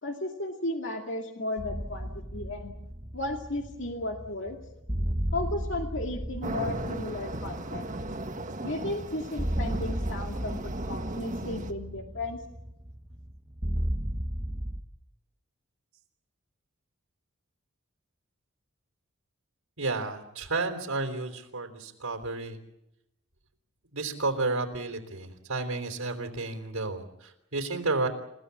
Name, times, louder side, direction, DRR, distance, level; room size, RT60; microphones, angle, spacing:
voice 1, 0.0-2.7 3.1-4.6 5.3-7.9 8.6-12.4, left 2 dB, 60° left, 2 dB, 2.3 m, -34 dB
sound 1, 1.6-14.8, equal, 15° right, 1.1 m, -35 dB
sound 2, 6.4-11.7, right 1 dB, 35° right, 1.6 m, -36 dB
voice 2, 19.8-22.6 23.9-28.1, right 3 dB, 80° right, 2 dB, 3.7 m, -31 dB
29.5 x 16.0 x 8.5 m, 0.89 s
head